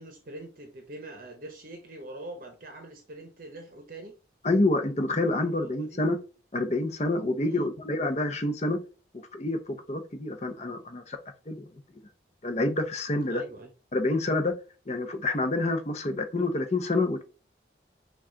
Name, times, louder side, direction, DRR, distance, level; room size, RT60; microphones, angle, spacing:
voice 1, 0.0-4.1 5.9-6.0 7.4-7.7 13.3-13.7, right 1 dB, 50° right, 4 dB, 0.8 m, -43 dB
voice 2, 4.4-6.2 6.5-8.8 9.3-11.2 11.5-11.6 12.4-13.4 13.9-14.5 14.9-17.2, left 2 dB, 35° left, 7 dB, 0.7 m, -27 dB
5.9 x 2.4 x 3.8 m, 0.34 s
head